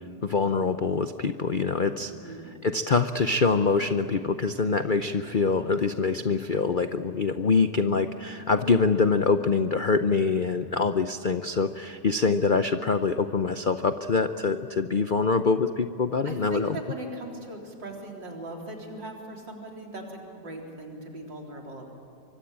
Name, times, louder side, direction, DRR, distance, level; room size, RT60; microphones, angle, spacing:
voice 1, 0.2-2.3 2.6-16.8, left 4 dB, 65° left, 9 dB, 0.5 m, -25 dB
voice 2, 2.1-2.5 16.2-21.9, right 2 dB, 85° right, 0 dB, 4.5 m, -39 dB
24.5 x 23.5 x 8.8 m, 2.6 s
omnidirectional pair, 1.9 m